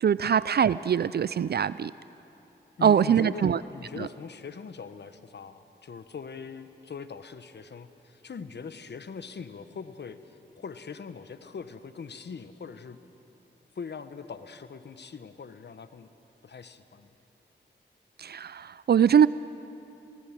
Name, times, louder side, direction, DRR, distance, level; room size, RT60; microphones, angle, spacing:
voice 1, 0.0-1.9 2.8-3.6 4.0-4.1 18.2-19.3, right 8 dB, 55° right, 17 dB, 0.4 m, -22 dB
voice 2, 2.8-13.0 13.7-16.1 16.4-17.1, left 5 dB, 60° left, 11 dB, 1.2 m, -41 dB
27.0 x 18.5 x 7.5 m, 2.9 s
supercardioid pair, 40°, 20 cm